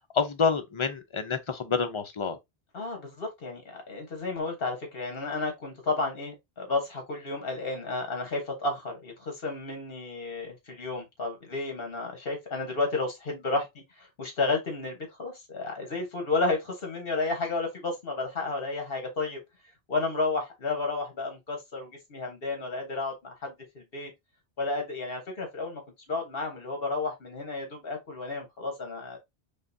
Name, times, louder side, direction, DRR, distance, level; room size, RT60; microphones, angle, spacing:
voice 1, 0.1-2.4, left 5 dB, 40° left, 0.4 m, -28 dB
voice 2, 2.7-13.7 14.0-19.4 19.9-24.1 24.6-25.8 26.1-29.2, left 3 dB, 65° left, 1.4 m, -32 dB
5.1 x 2.3 x 2.6 m
omnidirectional pair, 1.0 m